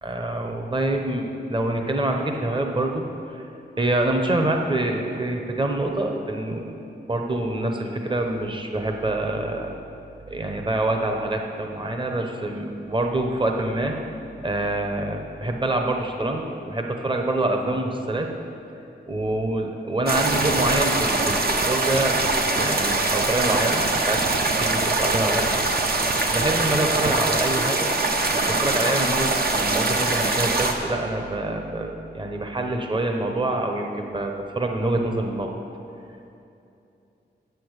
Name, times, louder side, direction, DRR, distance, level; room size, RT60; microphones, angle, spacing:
voice 1, 0.0-3.4 3.8-6.7 7.1-9.8 10.3-13.9 14.4-18.3 19.1-24.2 24.6-25.6 26.2-27.9 28.3-35.5, right 1 dB, 25° right, 3 dB, 1.0 m, -26 dB
sound 1, 20.1-30.7, right 2 dB, 55° right, 1.0 m, -23 dB
8.3 x 6.9 x 8.1 m, 2.7 s
wide cardioid pair, 90°, 18 cm